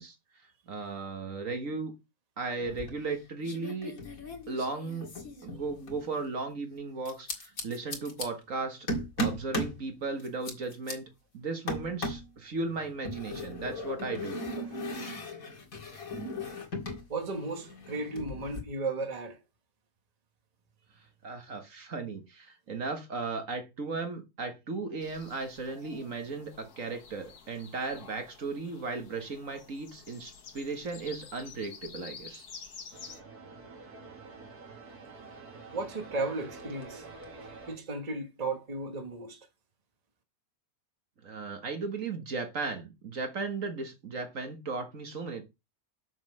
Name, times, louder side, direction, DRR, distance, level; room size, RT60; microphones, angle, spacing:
voice 1, 0.0-1.9 2.4-4.0 4.5-5.1 5.4-8.9 9.2-11.1 11.3-14.4 21.2-32.4 41.2-45.4, right 3 dB, 60° right, 1.8 m, -36 dB
sound 1, 2.6-3.2 3.4-6.0 7.0-8.3 8.9-9.8 10.2-10.9 11.7-12.3 13.0-17.0 17.3-18.6, left 1 dB, 65° left, 2.5 m, -37 dB
voice 2, 17.1-19.4 35.7-37.1 37.4-39.4, right 3 dB, 25° right, 1.4 m, -35 dB
sound 2, 25.0-33.2, left 6 dB, 90° left, 1.8 m, -50 dB
sound 3, 32.9-37.8, right 3 dB, 90° right, 2.5 m, -48 dB
7.0 x 6.4 x 5.4 m
omnidirectional pair, 1.6 m